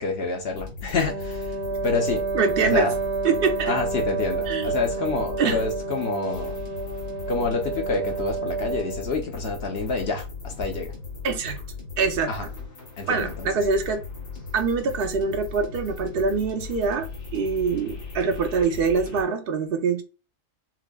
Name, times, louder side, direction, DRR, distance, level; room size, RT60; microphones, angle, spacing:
voice 1, 0.0-1.6 1.8-2.3 2.6-3.0 3.7-6.6 7.3-10.9 12.3-12.5 13.0-13.5, left 4 dB, 55° left, 0.7 m, -28 dB
sound 1, 0.6-19.2, left 4 dB, 80° left, 2.1 m, -38 dB
Wind instrument woodwind instrument, 1.0-9.2, right 4 dB, 85° right, 1.4 m, -29 dB
voice 2, 2.3-2.9 3.2-3.7 4.5-4.7 5.4-5.6 11.2-11.6 12.0-12.3 13.1-14.0 14.5-20.0, right 5 dB, 55° right, 0.6 m, -24 dB
6.0 x 2.0 x 2.2 m
omnidirectional pair, 1.6 m